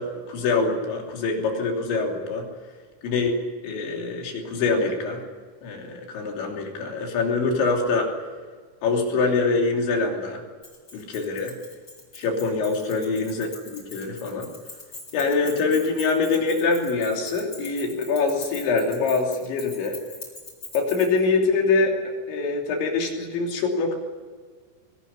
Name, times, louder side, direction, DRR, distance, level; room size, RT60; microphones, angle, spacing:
voice 1, 0.0-2.5 3.0-3.4 3.6-5.2 5.6-8.1 8.8-10.4 10.9-11.5 12.2-14.5 15.1-20.0 20.7-24.0, left 4 dB, 70° left, 1 dB, 5.3 m, -24 dB
Keys jangling, 10.6-21.2, left 3 dB, 25° left, 4.6 m, -42 dB
22.0 x 18.0 x 10.0 m, 1.5 s
omnidirectional pair, 5.6 m